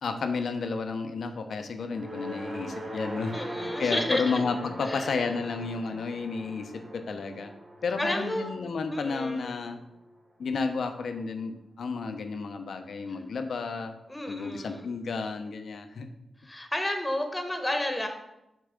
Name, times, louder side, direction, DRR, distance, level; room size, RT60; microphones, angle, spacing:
voice 1, 0.0-3.4 3.6-7.5 7.8-9.8 10.4-13.9 14.3-16.1, left 4 dB, 75° left, 6 dB, 0.7 m, -32 dB
sound 1, 1.8-10.2, right 1 dB, 45° right, 2.5 m, -41 dB
voice 2, 3.3-4.4 4.8-5.3 8.0-8.5 8.9-9.6 14.1-14.9 16.4-18.1, left 1 dB, 15° left, 5 dB, 1.0 m, -31 dB
6.7 x 3.6 x 5.1 m, 0.88 s
cardioid pair, 75°, 0 cm